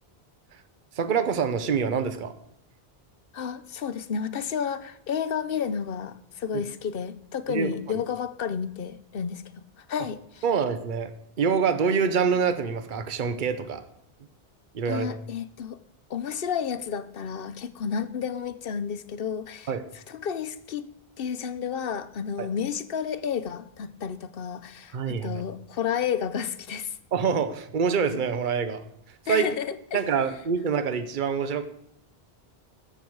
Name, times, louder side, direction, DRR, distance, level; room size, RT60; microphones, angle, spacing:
voice 1, 1.0-2.3 7.5-8.0 10.4-11.1 11.4-13.8 14.7-15.1 19.7-19.8 22.4-22.5 24.9-25.4 27.1-28.8 29.3-29.6 29.9-31.6, right 6 dB, 50° right, 11 dB, 1.0 m, -26 dB
voice 2, 3.3-9.4 9.8-10.4 14.9-15.8 16.1-20.8 21.2-27.0 29.3-30.0, left 7 dB, 65° left, 13 dB, 0.9 m, -31 dB
14.5 x 7.1 x 4.6 m, 0.74 s
omnidirectional pair, 1.1 m